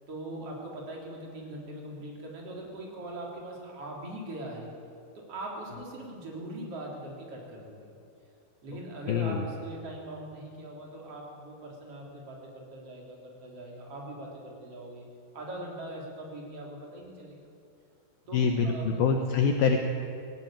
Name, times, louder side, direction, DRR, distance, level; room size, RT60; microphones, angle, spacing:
voice 1, 0.1-4.7 5.1-7.9 8.6-15.0 15.3-17.4 18.3-18.4 18.6-19.0, right 1 dB, 30° right, -2 dB, 3.9 m, -41 dB
voice 2, 9.1-9.5 18.3-19.8, left 5 dB, 85° left, 4 dB, 2.1 m, -25 dB
19.0 x 16.5 x 8.9 m, 2.5 s
omnidirectional pair, 5.8 m